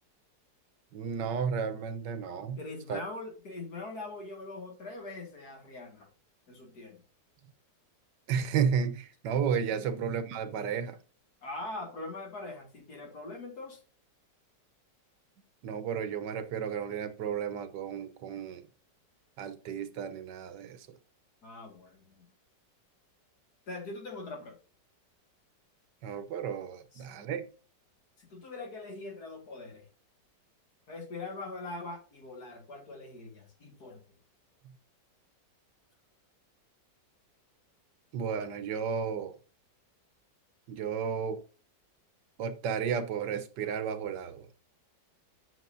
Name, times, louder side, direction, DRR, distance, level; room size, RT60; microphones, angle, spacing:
voice 1, 0.9-2.6 2.9-3.0 8.3-11.0 15.6-18.6 19.4-20.9 26.0-27.4 38.1-39.3 40.7-41.4 42.4-44.5, right 7 dB, 80° right, 1.5 m, -33 dB
voice 2, 2.6-6.1 6.5-7.0 9.7-10.0 11.4-13.8 21.4-22.3 23.7-24.6 26.9-27.1 28.2-29.9 30.9-34.0, left 2 dB, 60° left, 2.4 m, -42 dB
7.7 x 7.6 x 2.6 m
omnidirectional pair, 1.9 m